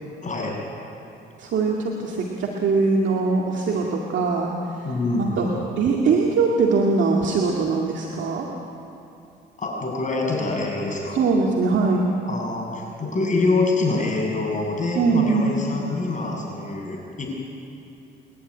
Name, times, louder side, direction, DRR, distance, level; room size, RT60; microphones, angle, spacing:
voice 1, 0.2-0.6 4.7-5.6 9.6-11.2 12.3-17.3, left 3 dB, 40° left, -1 dB, 7.7 m, -25 dB
voice 2, 1.4-4.5 5.1-5.5 5.8-8.5 11.1-12.1 14.9-15.6, right 4 dB, 70° right, -1 dB, 2.3 m, -21 dB
30.0 x 11.5 x 9.9 m, 2.7 s
cardioid pair, 90°, 20 cm